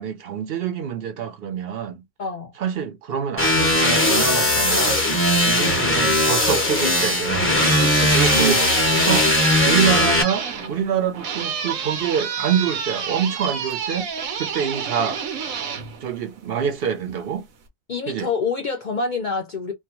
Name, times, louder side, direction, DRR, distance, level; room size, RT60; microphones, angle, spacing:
voice 1, 0.0-2.0 2.6-5.0 5.4-7.5 8.1-8.6 9.0-14.1 14.3-15.2 16.0-17.5 18.1-18.3, right 7 dB, 60° right, 0.7 m, -26 dB
voice 2, 2.2-2.5 5.6-5.8 7.8-8.5 17.9-19.7, left 4 dB, 55° left, 0.5 m, -27 dB
sound 1, 3.4-10.2, left 1 dB, 15° left, 0.6 m, -19 dB
sound 2, 7.2-16.7, right 6 dB, 90° right, 1.2 m, -29 dB
2.8 x 2.1 x 2.9 m
omnidirectional pair, 1.4 m